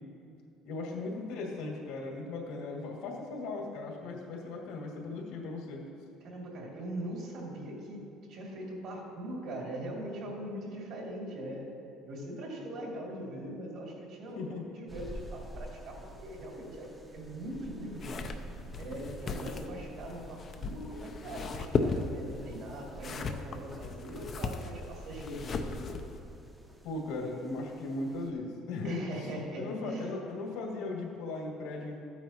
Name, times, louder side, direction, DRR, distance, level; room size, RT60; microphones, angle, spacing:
voice 1, 0.7-5.8 14.4-14.7 26.8-29.1 29.6-32.0, left 3 dB, 85° left, -1 dB, 2.1 m, -37 dB
voice 2, 6.2-11.7 12.0-18.2 18.7-26.0 28.8-30.1, right 1 dB, 55° right, -2 dB, 2.5 m, -41 dB
sound 1, 14.9-28.3, right 1 dB, 5° right, 0.8 m, -48 dB
sound 2, 17.9-26.2, left 4 dB, 30° left, 0.5 m, -36 dB
13.5 x 9.1 x 2.9 m, 2.6 s
cardioid pair, 160°, 0 cm